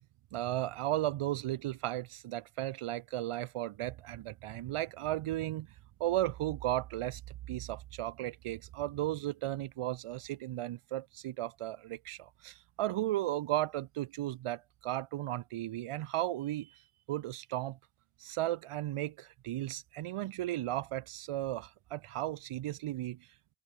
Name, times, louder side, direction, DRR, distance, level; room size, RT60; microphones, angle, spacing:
voice 1, 0.3-5.7 6.0-7.2 7.5-16.8 17.1-17.8 18.2-23.3, right 14 dB, 85° right, 1.7 m, -35 dB
cardioid pair, 65°, 50 cm